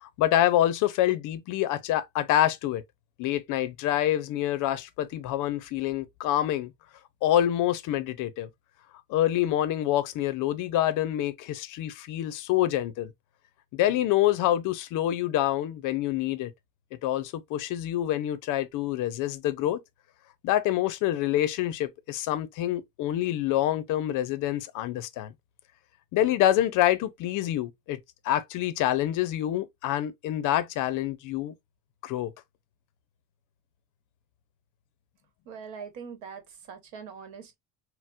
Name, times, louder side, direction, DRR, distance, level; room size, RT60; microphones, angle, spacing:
voice 1, 0.0-2.8 3.2-6.7 7.2-8.5 9.1-13.1 13.7-16.5 17.0-19.8 20.4-25.3 26.1-28.0 28.2-31.5 32.0-32.3, left 13 dB, 50° left, 0.5 m, -26 dB
voice 2, 35.4-37.5, right 6 dB, 80° right, 1.1 m, -42 dB
4.1 x 2.0 x 2.3 m
supercardioid pair, 125°, 42 cm